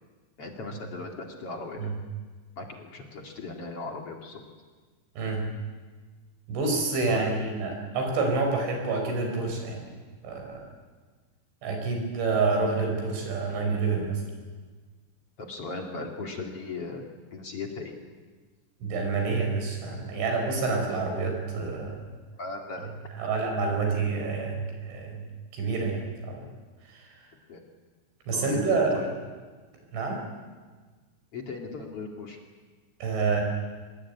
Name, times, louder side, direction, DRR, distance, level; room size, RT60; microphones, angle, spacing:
voice 1, 0.4-1.9 2.6-4.4 7.1-7.2 15.4-17.0 17.3-18.0 22.3-22.9 23.2-23.3 27.5-27.6 28.3-29.1 31.3-32.4, left 3 dB, 40° left, 2 dB, 2.3 m, -37 dB
voice 2, 6.5-9.9 10.2-10.7 11.6-14.2 18.8-22.0 23.2-25.2 25.5-26.5 26.9-27.1 28.3-29.1 29.9-30.2 33.0-33.4, right 4 dB, 70° right, 3 dB, 7.5 m, -28 dB
25.0 x 21.0 x 9.5 m, 1.4 s
omnidirectional pair, 5.5 m